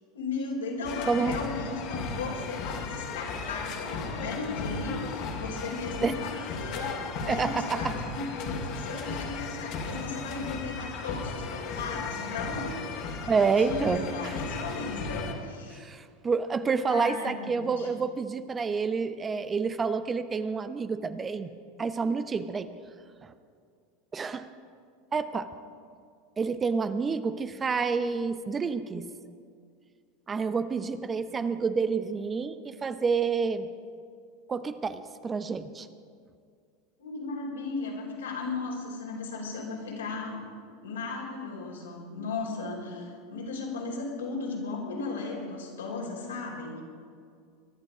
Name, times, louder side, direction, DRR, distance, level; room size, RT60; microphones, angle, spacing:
voice 1, 0.1-15.8 16.9-17.9 37.0-40.4 40.8-46.8, left 3 dB, 80° left, -1 dB, 4.2 m, -36 dB
carnival parade cologne drums and pipes, 0.8-15.3, left 4 dB, 55° left, 2.6 m, -35 dB
voice 2, 1.1-1.4 6.0-6.1 7.3-7.9 13.3-14.3 15.7-21.5 21.8-22.7 23.2-23.3 24.1-24.5 25.1-25.5 26.4-29.1 30.3-33.7 34.5-35.9, right 5 dB, 25° right, 11 dB, 0.8 m, -28 dB
23.0 x 11.5 x 5.1 m, 2.2 s
hypercardioid pair, 85°, 0 cm